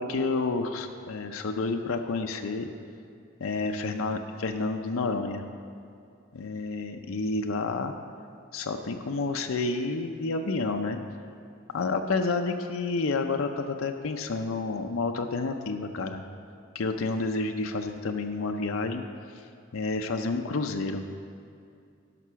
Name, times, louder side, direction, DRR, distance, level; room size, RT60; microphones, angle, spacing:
voice 1, 0.0-2.7 3.4-5.4 6.3-7.9 8.5-11.0 11.7-16.2 16.7-19.0 19.3-19.4 19.7-21.0, left 3 dB, 85° left, 5 dB, 0.6 m, -29 dB
11.0 x 6.0 x 5.6 m, 2.4 s
head